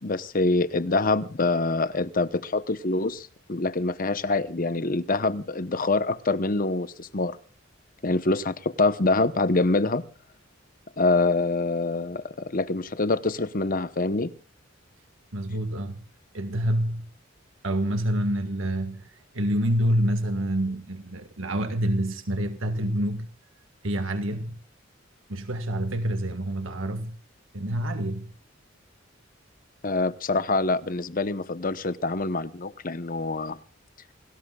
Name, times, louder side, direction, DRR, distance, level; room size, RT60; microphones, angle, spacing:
voice 1, 0.0-7.4 8.0-10.0 11.0-14.3 29.8-33.6, left 3 dB, 45° left, 0.9 m, -25 dB
voice 2, 15.3-16.0 16.3-17.1 17.6-23.3 23.8-24.6 25.3-27.2 27.5-28.3, right 1 dB, 80° right, 1.6 m, -27 dB
29.0 x 18.5 x 2.4 m
head